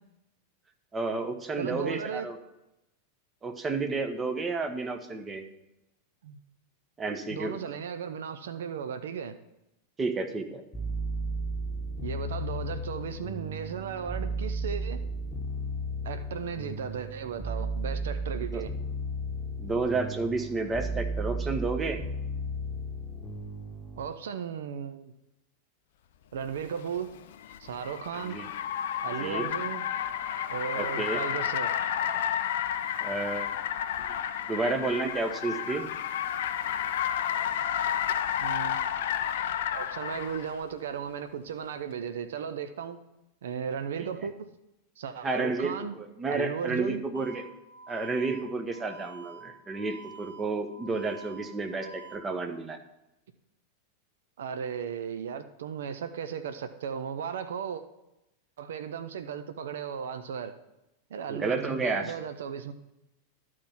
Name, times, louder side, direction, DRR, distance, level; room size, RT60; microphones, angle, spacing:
voice 1, 0.9-2.4 3.4-5.4 7.0-7.6 10.0-10.6 18.5-18.6 19.6-22.0 28.2-28.5 29.2-29.5 30.8-31.2 33.0-33.6 34.0-34.1 34.4-35.9 45.2-47.4 47.9-52.8 61.3-62.1, right 3 dB, 20° right, 6 dB, 1.0 m, -31 dB
voice 2, 1.5-2.3 6.2-6.4 7.3-9.3 12.0-15.0 16.0-18.7 24.0-25.1 26.3-27.1 27.6-28.4 29.0-29.8 30.5-31.8 38.4-38.8 39.7-43.0 43.4-44.5 45.0-46.0 46.3-47.0 54.4-57.8 58.6-60.5 61.1-62.7, right 7 dB, 60° right, 9 dB, 0.6 m, -36 dB
sound 1, 10.7-24.1, right 1 dB, 10° left, 1.4 m, -34 dB
Car, 26.6-40.5, left 9 dB, 55° left, 0.5 m, -31 dB
sound 2, 47.1-52.1, right 4 dB, 85° right, 1.1 m, -48 dB
11.5 x 4.7 x 5.6 m, 0.89 s
figure-of-eight pair, 90°, 0 cm